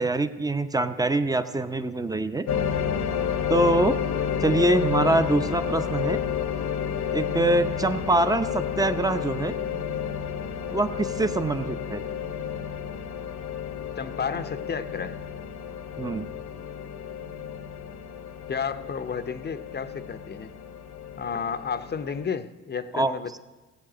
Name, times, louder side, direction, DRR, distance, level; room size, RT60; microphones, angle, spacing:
voice 1, 0.0-2.5 3.5-4.0 4.4-6.2 7.1-9.5 10.7-12.0 16.0-16.3 22.9-23.1, right 2 dB, 10° right, 10 dB, 0.7 m, -24 dB
sound 1, 2.5-22.3, left 8 dB, 55° left, 0.9 m, -31 dB
voice 2, 14.0-15.2 18.5-20.5 21.2-23.4, left 6 dB, 30° left, 11 dB, 0.7 m, -32 dB
16.5 x 8.4 x 5.0 m, 1.2 s
supercardioid pair, 75°, 33 cm